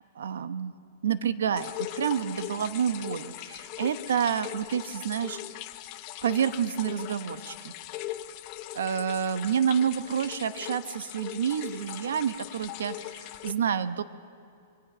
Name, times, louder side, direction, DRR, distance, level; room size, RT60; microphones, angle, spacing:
voice 1, 0.2-0.7 1.0-5.4 6.2-7.7 8.7-14.0, right 8 dB, 85° right, 13 dB, 0.9 m, -29 dB
sound 1, 1.6-13.5, left 14 dB, 30° left, 0.8 m, -40 dB
24.0 x 22.5 x 6.1 m, 2.5 s
hypercardioid pair, 175°, 0 cm